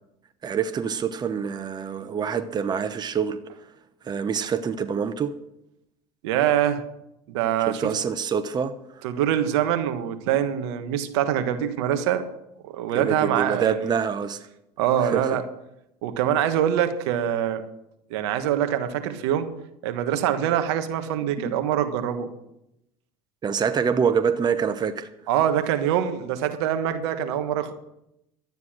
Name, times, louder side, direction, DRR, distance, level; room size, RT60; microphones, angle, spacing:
voice 1, 0.4-3.4 4.0-5.4 7.7-9.0 12.9-14.5 15.0-15.4 23.4-25.1, right 7 dB, 30° right, 0.9 m, -26 dB
voice 2, 6.2-6.8 7.3-7.9 9.0-12.3 12.7-13.9 14.8-15.4 16.0-17.6 18.1-19.5 19.8-22.3 25.3-27.7, right 10 dB, 80° right, 1.4 m, -24 dB
12.0 x 9.5 x 6.4 m
supercardioid pair, 90°, 14 cm